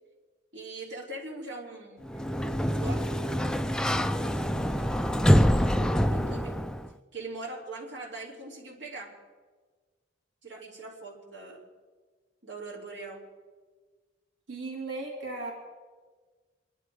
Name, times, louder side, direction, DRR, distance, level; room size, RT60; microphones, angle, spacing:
voice 1, 0.5-3.5 3.9-5.2 5.5-6.6 7.1-9.2 10.4-11.6 12.4-13.2, right 2 dB, 70° right, -4 dB, 3.1 m, -42 dB
Sliding door, 2.0-6.9, equal, 5° left, 0.4 m, -25 dB
voice 2, 14.5-15.5, right 3 dB, 85° right, -1 dB, 3.0 m, -36 dB
27.0 x 11.0 x 4.8 m, 1.4 s
head